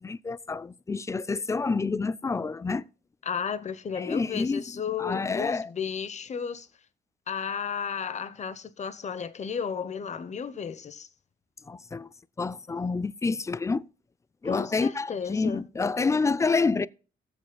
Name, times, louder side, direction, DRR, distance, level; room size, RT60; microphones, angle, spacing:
voice 1, 0.0-2.8 4.0-4.6 5.0-5.7 11.7-12.1 12.4-13.8 14.4-16.9, left 4 dB, 15° left, 0.4 m, -28 dB
voice 2, 3.2-6.7 7.3-11.1 14.4-15.6, left 7 dB, 35° left, 0.8 m, -33 dB
17.0 x 7.7 x 2.2 m
cardioid pair, 90°, 20 cm